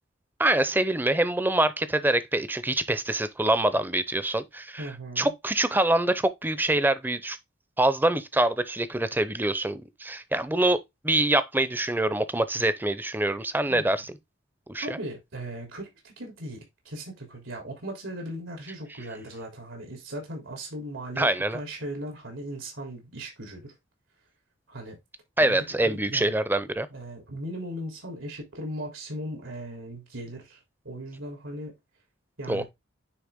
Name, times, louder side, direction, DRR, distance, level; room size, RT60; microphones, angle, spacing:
voice 1, 0.4-4.9 5.2-7.4 7.8-10.8 11.0-14.0 14.7-14.9 21.2-21.6 25.4-26.9 32.5-32.6, right 1 dB, 10° right, 0.6 m, -25 dB
voice 2, 4.8-5.3 13.7-14.1 14.8-23.7 24.7-25.0 25.4-26.3 26.9-30.6 30.8-31.8 32.4-32.6, right 1 dB, 90° right, 3.3 m, -38 dB
9.7 x 3.4 x 3.5 m
head